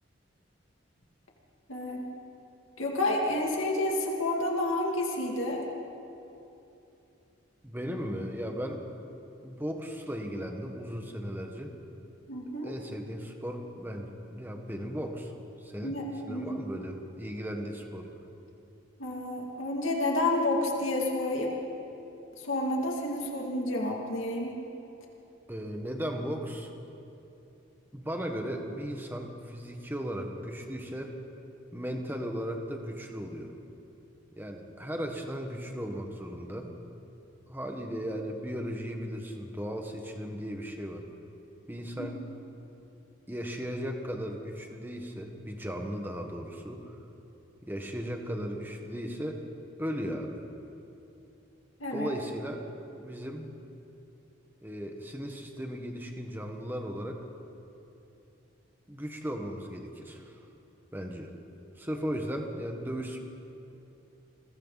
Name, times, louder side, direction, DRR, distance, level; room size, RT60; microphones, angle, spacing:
voice 1, 1.7-2.0 2.8-5.6 12.3-12.7 15.8-16.6 19.0-21.5 22.4-24.6 42.0-42.1 51.8-52.1, left 1 dB, 85° left, -1 dB, 2.7 m, -30 dB
voice 2, 7.6-8.8 9.4-11.7 12.6-15.3 15.6-15.9 16.2-18.1 25.5-26.7 27.9-31.1 31.7-33.5 34.3-36.7 37.5-41.0 41.7-42.2 43.3-47.0 47.6-49.4 49.8-50.4 51.9-52.6 53.0-53.5 54.6-57.2 58.9-60.4 60.9-61.3 61.8-63.2, equal, 10° right, 3 dB, 1.6 m, -36 dB
29.5 x 21.5 x 4.2 m, 2.9 s
head